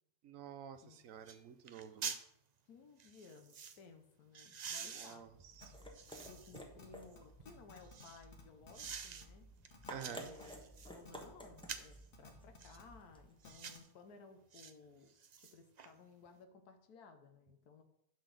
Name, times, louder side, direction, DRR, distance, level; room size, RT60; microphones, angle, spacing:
voice 1, 0.2-2.1 4.8-5.7 9.9-10.3, right 8 dB, 65° right, 11 dB, 1.0 m, -50 dB
sound 1, 0.7-0.8 1.3-1.4 1.7-2.3 3.0-3.8 4.3-6.6 7.1-8.2 8.7-9.3 9.6-11.0 11.6-12.0 12.6-12.8 13.4-13.9 14.5-14.7 15.1-15.9 16.3-16.4, right 6 dB, 80° right, 0.3 m, -47 dB
voice 2, 2.7-5.3 6.3-9.5 10.0-15.1 15.4-17.8, left 4 dB, 80° left, 6 dB, 1.5 m, -59 dB
sound 2, 5.2-13.4, equal, 5° left, 1.0 m, -54 dB
sound 3, 5.6-5.7 6.3-6.9 7.2-7.3 7.5-8.1 8.3-8.9 9.2-9.3 9.7-9.9 10.4-10.5 11.0-11.3 11.6-11.7 12.1-12.8 13.4-13.8, left 5 dB, 60° left, 2.1 m, -57 dB
11.0 x 4.0 x 6.4 m, 0.78 s
omnidirectional pair, 1.6 m